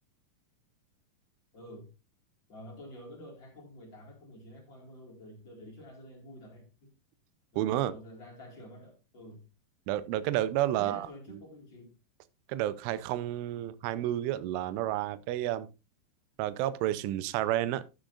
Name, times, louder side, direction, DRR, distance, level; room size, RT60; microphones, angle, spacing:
voice 1, 1.5-1.9 2.5-6.9 7.5-9.5 10.7-12.0, equal, 40° left, 1.6 m, -49 dB
voice 2, 7.6-7.9 9.9-11.1 12.5-15.7 16.4-17.8, right 13 dB, 85° right, 3.1 m, -30 dB
12.0 x 9.1 x 2.5 m
omnidirectional pair, 5.5 m